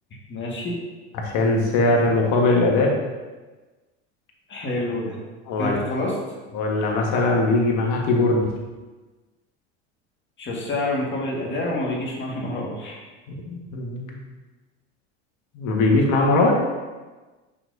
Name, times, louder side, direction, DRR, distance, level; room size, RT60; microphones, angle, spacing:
voice 1, 0.3-0.8 4.5-5.2 5.6-6.1 10.4-13.0, left 1 dB, 35° left, -2 dB, 1.9 m, -27 dB
voice 2, 1.1-2.9 5.5-5.8 6.5-8.5 13.4-14.2 15.5-16.6, left 2 dB, 60° left, 0 dB, 1.6 m, -20 dB
6.1 x 5.9 x 2.7 m, 1.3 s
supercardioid pair, 95°, 35 cm